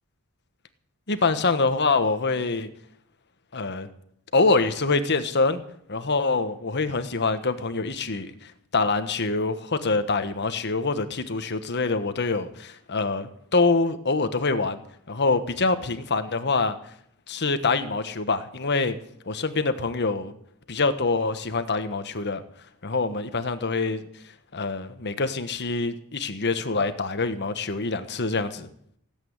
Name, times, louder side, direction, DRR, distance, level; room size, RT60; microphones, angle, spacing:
voice 1, 1.1-2.7 3.5-3.9 4.3-5.6 5.9-14.8 15.1-16.8 17.3-19.0 19.3-20.3 20.7-22.4 22.8-24.1 24.5-28.7, left 3 dB, 50° left, 10 dB, 1.3 m, -25 dB
17.0 x 8.7 x 9.5 m, 0.68 s
head